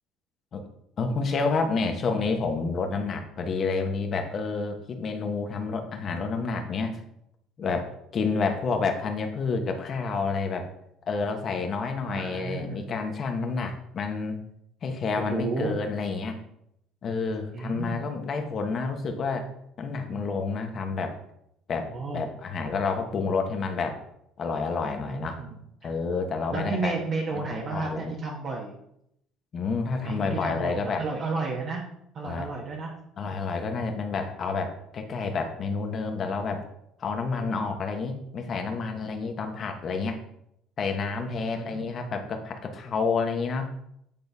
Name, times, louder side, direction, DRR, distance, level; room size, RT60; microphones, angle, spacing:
voice 1, 1.0-7.0 7.6-10.7 11.1-14.4 14.8-16.4 17.0-19.5 19.8-21.2 21.7-24.0 24.4-25.4 25.8-26.9 27.5-28.1 29.5-31.0 32.2-32.5 33.2-36.7 37.0-40.2 40.8-43.7, left 4 dB, 45° left, 5 dB, 1.2 m, -29 dB
voice 2, 12.1-12.9 15.2-15.8 17.5-18.0 21.7-22.3 24.8-25.6 26.5-28.8 29.9-31.8 32.1-32.9 41.4-41.9, right 4 dB, 50° right, -2 dB, 1.2 m, -32 dB
8.7 x 4.0 x 3.5 m, 0.76 s
supercardioid pair, 95°, 0 cm